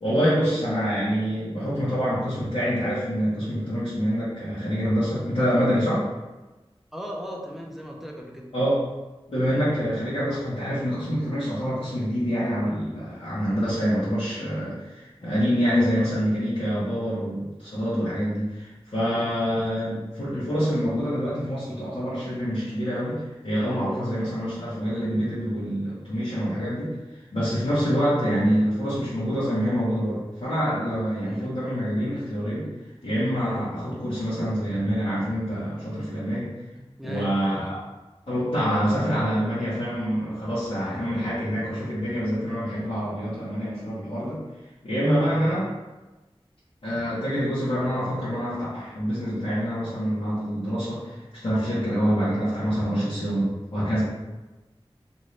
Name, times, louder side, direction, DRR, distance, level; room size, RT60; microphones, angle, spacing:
voice 1, 0.0-6.0 8.5-8.8 9.3-26.9 27.3-32.7 33.0-36.5 37.0-37.8 38.3-44.4 44.8-45.7 46.8-54.0, equal, 65° left, -12 dB, 1.0 m, -26 dB
voice 2, 6.9-8.5 19.0-19.3 23.9-24.1 31.2-31.5 36.8-37.7 40.8-41.0 45.3-45.5, equal, ahead, -1 dB, 0.6 m, -38 dB
2.6 x 2.6 x 3.2 m, 1.1 s
wide cardioid pair, 40°, 10 cm